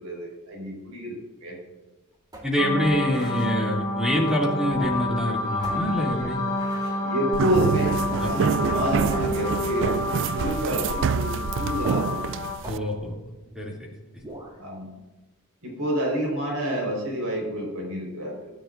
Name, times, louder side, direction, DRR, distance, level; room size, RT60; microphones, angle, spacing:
voice 1, 0.0-1.6 6.9-12.2 14.6-14.9 15.6-18.5, right 1 dB, 85° right, -1 dB, 4.5 m, -29 dB
sound 1, 2.3-3.5 4.6-5.3 5.6-7.0 8.1-8.4 8.6-8.7 9.1-10.6 11.7-12.3 12.6-13.8 14.2-14.6, right 1 dB, 20° right, 3.0 m, -40 dB
voice 2, 2.4-6.4 8.2-8.6 12.6-13.2 13.5-13.7, equal, 5° right, -3 dB, 2.6 m, -26 dB
sound 2, 2.6-12.5, left 1 dB, 20° left, 3.3 m, -29 dB
sound 3, 7.3-12.8, right 6 dB, 60° right, 0.3 m, -27 dB
23.5 x 10.0 x 2.6 m, 1.1 s
head